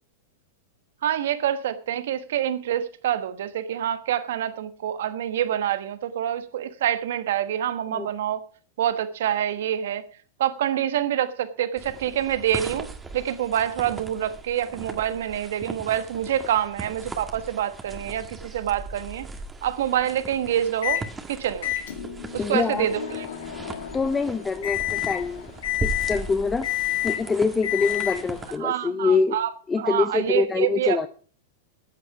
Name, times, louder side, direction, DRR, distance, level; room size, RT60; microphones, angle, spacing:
voice 1, 1.0-8.4 8.8-10.0 10.4-12.9 13.1-19.3 19.6-21.0 21.3-21.7 22.3-23.3 28.6-29.5 29.8-31.1, right 10 dB, 70° right, 1.2 m, -26 dB
sound 1, 11.8-28.6, right 3 dB, 15° right, 1.7 m, -38 dB
Microwave oven, 20.8-21.1 21.6-28.5, left 14 dB, 80° left, 1.9 m, -30 dB
voice 2, 22.4-22.9 23.9-25.5 25.8-26.7 27.0-29.4 29.7-31.1, left 4 dB, 15° left, 0.7 m, -25 dB
14.0 x 8.7 x 4.7 m
hypercardioid pair, 120°, 0 cm